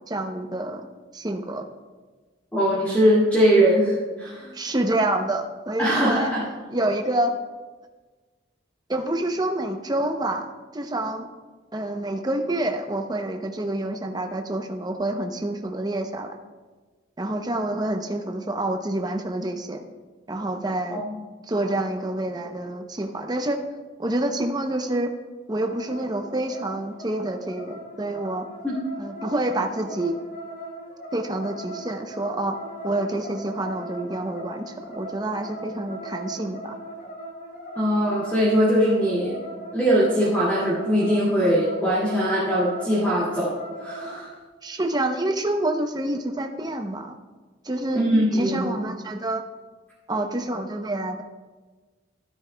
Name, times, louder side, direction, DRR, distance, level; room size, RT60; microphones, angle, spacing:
voice 1, 0.1-1.6 4.5-6.3 6.7-7.3 8.9-11.3 11.7-16.4 17.2-19.8 20.3-21.0 21.5-23.6 24.0-25.1 25.5-28.4 29.0-30.2 31.1-32.6 32.8-36.8 44.6-47.2 47.6-48.0 48.3-49.4 50.1-51.2, right 1 dB, 20° right, 5 dB, 0.6 m, -27 dB
voice 2, 2.5-4.5 5.8-6.4 20.9-21.1 28.6-28.8 37.8-39.3 39.7-43.5 43.8-44.3 47.9-48.7, equal, 10° left, -9 dB, 2.1 m, -21 dB
sound 1, 25.5-44.2, right 1 dB, 50° left, 3.7 m, -39 dB
13.0 x 12.5 x 2.2 m, 1.3 s
head